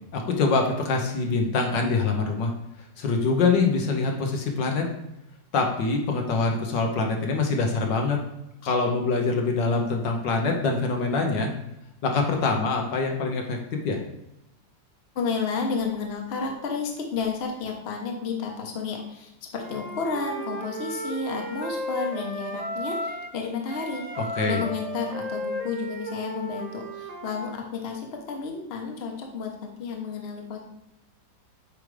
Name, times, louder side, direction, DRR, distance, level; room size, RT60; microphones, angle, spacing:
voice 1, 0.1-2.5 3.0-4.8 5.5-8.2 8.6-11.5 12.0-13.6 13.8-14.0 24.4-24.6, left 4 dB, 70° left, 2 dB, 1.6 m, -24 dB
voice 2, 15.1-24.0 24.5-30.6, left 5 dB, 40° left, 2 dB, 1.1 m, -31 dB
Wind instrument woodwind instrument, 19.6-23.4 23.7-27.5, right 1 dB, 75° right, 0.3 m, -34 dB
8.5 x 4.9 x 3.3 m, 0.88 s
omnidirectional pair, 2.0 m